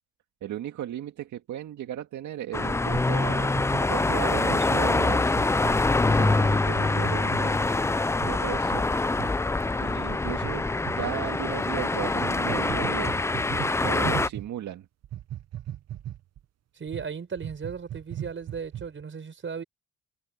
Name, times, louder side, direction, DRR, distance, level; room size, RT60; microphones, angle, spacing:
voice 1, 0.4-5.4 6.1-7.8 8.2-8.9 9.8-13.2 13.8-14.9, right 12 dB, 75° right, 2.0 m, -36 dB
sound 1, 2.5-14.3, left 3 dB, 10° left, 0.4 m, -25 dB
sound 2, 2.9-5.8 6.2-6.4 6.7-7.4 8.2-8.4 8.7-8.8 9.1-9.3 10.4-11.0 12.1-14.5 15.0-16.4 16.9-17.1 17.4-19.0, right 11 dB, 60° right, 1.0 m, -37 dB
voice 2, 16.8-19.6, right 6 dB, 40° right, 5.3 m, -36 dB
cardioid pair, 90°, 30 cm